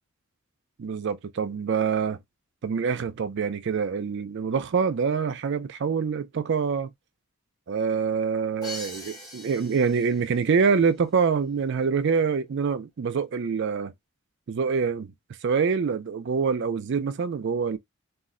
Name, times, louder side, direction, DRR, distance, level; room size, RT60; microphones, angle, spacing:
voice 1, 0.8-2.2 2.6-6.9 7.7-13.9 14.5-15.1 15.4-17.8, right 5 dB, 55° right, 0.4 m, -25 dB
Crash cymbal, 8.6-10.5, left 1 dB, 20° left, 0.9 m, -41 dB
2.4 x 2.1 x 3.5 m
head